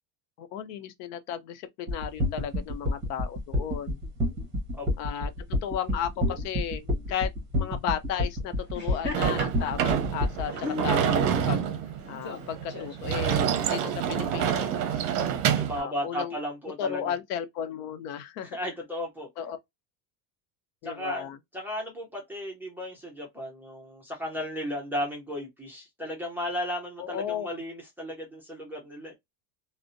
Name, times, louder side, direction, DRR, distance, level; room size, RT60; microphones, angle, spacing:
voice 1, 0.4-4.0 5.0-5.3 5.6-11.6 12.1-15.0 15.7-16.4 16.8-18.6 19.4-19.6 20.8-21.4 27.0-27.5, left 9 dB, 80° left, 0.7 m, -34 dB
sound 1, 1.9-10.4, left 1 dB, 25° right, 0.9 m, -28 dB
Laughter, 8.6-13.8, left 4 dB, 25° left, 0.8 m, -40 dB
Sliding door / Slam, 9.1-15.8, right 8 dB, 55° right, 0.6 m, -27 dB
voice 2, 15.5-17.1 18.4-19.3 20.8-29.1, equal, 5° right, 0.4 m, -35 dB
2.6 x 2.1 x 2.5 m
cardioid pair, 150°, 47 cm